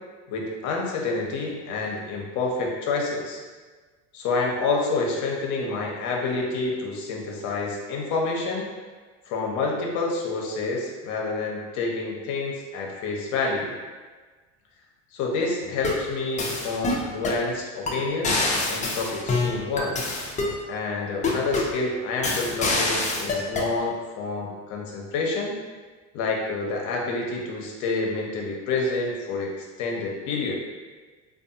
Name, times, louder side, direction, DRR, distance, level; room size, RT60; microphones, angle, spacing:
voice 1, 0.3-3.4 4.1-8.7 9.3-13.7 15.1-20.1 20.7-25.6 26.1-30.6, left 3 dB, 50° left, 0 dB, 0.7 m, -28 dB
sound 1, 15.6-16.0 16.4-17.4 17.9-18.0 18.2-20.6 21.2-21.8 22.2-23.7, left 2 dB, 20° left, 0.4 m, -26 dB
2.5 x 2.3 x 2.6 m, 1.4 s
hypercardioid pair, 80°, 37 cm